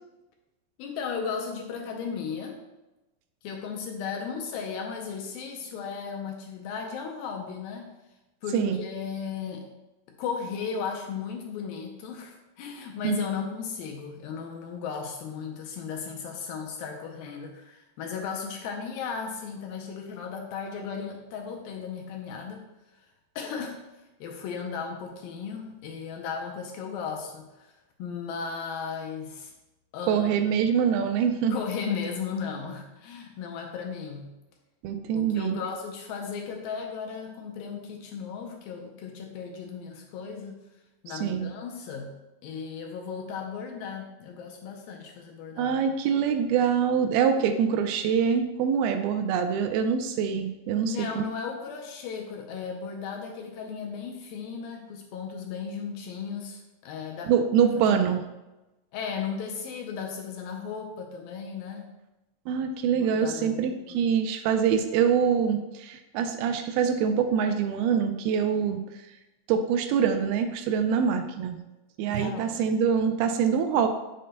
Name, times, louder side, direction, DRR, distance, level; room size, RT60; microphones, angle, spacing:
voice 1, 0.8-2.6 3.4-7.9 8.4-9.7 10.2-22.6 22.9-23.0 23.4-23.8 24.2-27.7 28.0-29.5 29.9-30.5 31.5-34.3 35.1-40.6 41.0-42.1 42.4-45.8 50.8-57.3 57.9-58.0 58.9-61.9 62.9-64.0 72.1-72.7, left 6 dB, 75° left, 2 dB, 2.3 m, -36 dB
voice 2, 30.1-31.6 34.8-35.6 41.2-41.5 45.6-51.2 57.3-58.2 62.5-68.8 69.5-71.6 72.0-73.9, right 7 dB, 80° right, 7 dB, 2.3 m, -24 dB
9.1 x 6.5 x 2.2 m, 1.0 s
omnidirectional pair, 4.5 m